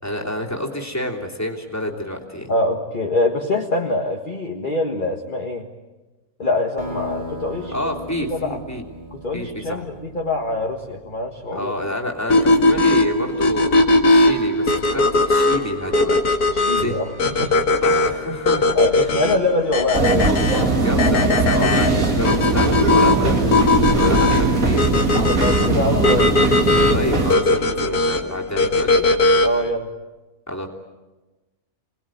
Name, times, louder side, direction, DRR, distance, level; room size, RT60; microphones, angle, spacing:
voice 1, 0.0-2.5 7.7-8.8 9.3-9.8 11.5-16.2 16.8-16.9 17.8-19.1 20.8-23.4 23.7-24.8 26.9-29.0 30.5-30.7, left 1 dB, 10° left, 0 dB, 3.2 m, -28 dB
voice 2, 2.5-5.7 6.4-7.8 8.3-8.6 9.1-11.7 16.5-17.5 18.7-20.4 23.9-24.4 25.3-26.3 29.4-29.9, left 2 dB, 35° left, 1 dB, 1.8 m, -24 dB
sound 1, 6.8-11.9, left 1 dB, 30° right, 3.4 m, -37 dB
sound 2, 12.3-29.7, left 2 dB, 85° left, 2.3 m, -19 dB
sound 3, 19.9-27.3, right 3 dB, 60° right, 2.7 m, -20 dB
27.5 x 20.0 x 9.2 m, 1.2 s
omnidirectional pair, 1.6 m